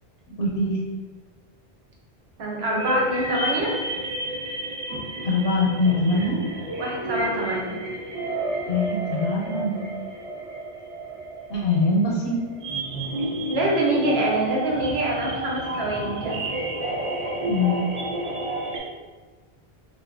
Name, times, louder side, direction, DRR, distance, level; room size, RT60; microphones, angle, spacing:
voice 1, 0.4-0.8 5.2-6.4 8.7-9.8 11.5-12.4 17.4-17.8, left 2 dB, 80° left, -2 dB, 0.8 m, -23 dB
voice 2, 2.4-3.7 6.8-7.7 13.5-16.4, right 1 dB, 90° right, -2 dB, 1.0 m, -25 dB
sound 1, 2.8-18.8, right 1 dB, 45° right, 0.6 m, -31 dB
2.7 x 2.1 x 3.6 m, 1.4 s
omnidirectional pair, 1.0 m